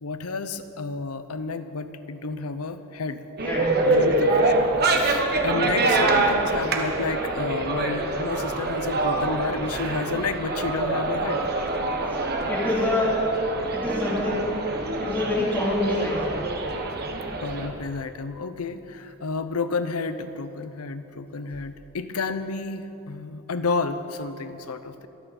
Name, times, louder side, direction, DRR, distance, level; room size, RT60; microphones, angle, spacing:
voice 1, 0.0-3.2 3.9-11.4 17.4-25.1, left 4 dB, 90° left, 10 dB, 0.8 m, -31 dB
voice 2, 3.4-4.1 5.5-5.7 12.1-12.2 12.5-13.2 13.7-14.5 15.0-16.4, left 1 dB, 10° left, -8 dB, 3.4 m, -26 dB
sound 1, 3.4-17.7, right 2 dB, 50° right, 1.3 m, -25 dB
24.0 x 9.1 x 4.3 m, 2.8 s
head